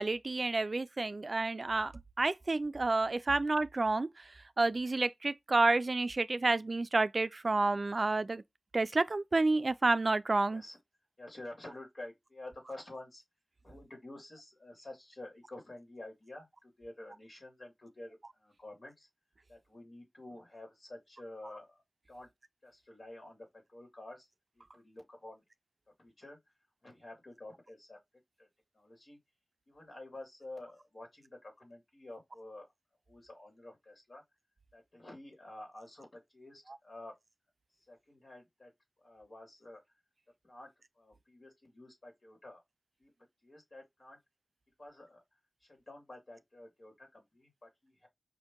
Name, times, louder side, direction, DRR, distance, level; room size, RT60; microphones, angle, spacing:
voice 1, 0.0-1.9 2.2-4.1 4.6-8.4 8.7-10.6, right 3 dB, 65° right, 0.3 m, -29 dB
voice 2, 11.2-13.2 13.6-19.1 19.5-21.8 22.1-22.3 22.6-24.3 24.5-25.4 26.0-26.4 26.8-28.0 28.4-28.5 28.7-29.2 29.7-32.7 33.1-34.2 34.7-37.1 37.9-38.7 39.0-39.8 40.4-40.7 41.0-42.6 43.0-43.1 43.4-44.2 44.8-45.2 45.7-48.1, left 2 dB, 70° left, 2.5 m, -50 dB
5.0 x 2.7 x 3.6 m
wide cardioid pair, 45°, 0 cm